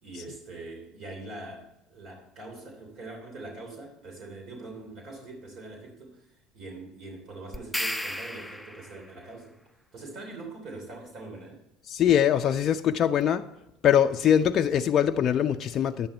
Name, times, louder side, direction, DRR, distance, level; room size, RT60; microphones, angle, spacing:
voice 1, 0.0-9.6 9.9-11.6, right 2 dB, 50° right, 1 dB, 3.0 m, -43 dB
sound 1, 7.5-9.1, left 1 dB, ahead, 0.6 m, -33 dB
voice 2, 11.9-13.5 13.8-16.1, left 9 dB, 45° left, 6 dB, 0.4 m, -22 dB
10.0 x 8.9 x 4.3 m, 0.86 s
hypercardioid pair, 70°, 0 cm